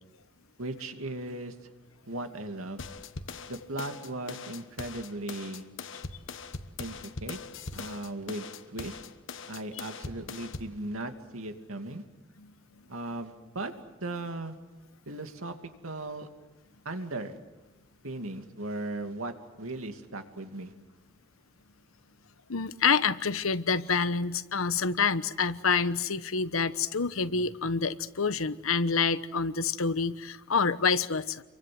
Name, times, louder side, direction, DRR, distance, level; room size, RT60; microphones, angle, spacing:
voice 1, 0.6-1.5 2.1-2.8 3.5-5.7 6.8-7.4 7.7-9.0 9.5-12.0 12.9-13.7 14.0-14.6 15.1-15.5 15.8-16.3 16.8-17.4 18.0-20.7, right 2 dB, 85° right, 6 dB, 2.6 m, -37 dB
sound 1, 2.8-10.8, left 4 dB, 65° left, 1.3 m, -41 dB
voice 2, 22.5-31.4, left 5 dB, 80° left, 13 dB, 1.1 m, -27 dB
29.5 x 24.0 x 7.8 m, 1.2 s
head